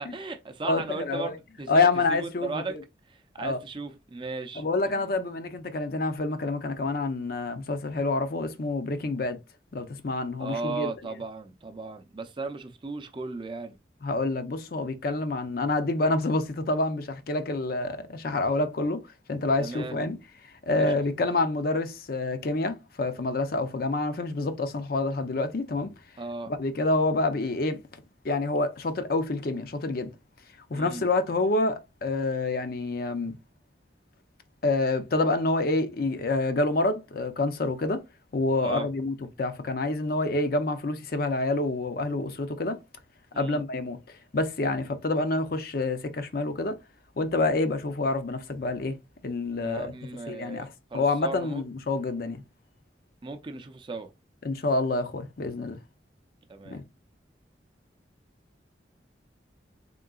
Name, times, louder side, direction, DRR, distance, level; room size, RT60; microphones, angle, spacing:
voice 1, 0.0-2.8 3.1-5.1 10.4-13.8 19.6-20.0 20.7-20.9 26.2-26.5 30.7-31.0 38.6-38.9 43.3-43.6 49.6-51.6 53.2-54.1 56.5-56.8, right 3 dB, 25° right, 0.4 m, -36 dB
voice 2, 0.6-1.3 1.7-2.8 3.4-3.6 4.6-9.4 9.7-10.9 14.0-19.0 19.3-20.2 20.7-25.9 26.5-27.8 28.2-30.1 30.7-33.4 34.6-38.0 38.3-42.8 43.4-44.0 44.3-46.7 47.2-48.9 49.2-49.9 50.3-50.7 50.9-52.4 54.4-55.8 56.7-56.8, left 2 dB, 50° left, 0.5 m, -27 dB
3.7 x 3.7 x 2.3 m
head